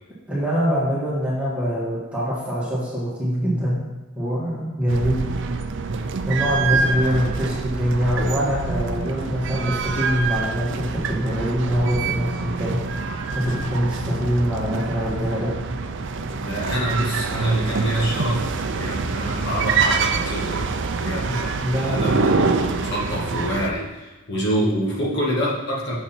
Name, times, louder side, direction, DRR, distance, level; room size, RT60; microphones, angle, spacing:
voice 1, 0.3-3.8 4.1-5.2 6.3-12.8 13.3-15.5 21.3-21.4 21.6-22.2, equal, 5° right, -7 dB, 2.0 m, -24 dB
sound 1, 4.9-23.7, right 4 dB, 55° right, 0.5 m, -26 dB
voice 2, 6.7-7.3 16.0-20.7 21.0-25.9, equal, 50° left, -5 dB, 1.9 m, -26 dB
8.2 x 7.0 x 4.4 m, 1.2 s
head